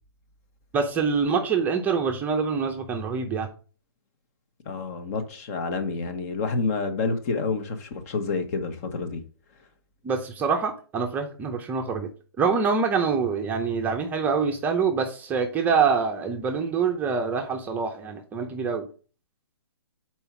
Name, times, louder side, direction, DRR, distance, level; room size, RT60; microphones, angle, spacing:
voice 1, 0.7-3.5 10.0-12.1 12.4-18.9, right 5 dB, 15° right, 0.7 m, -25 dB
voice 2, 4.6-9.2, left 4 dB, 40° left, 1.2 m, -28 dB
5.4 x 4.5 x 6.0 m
hypercardioid pair, 145°, 13 cm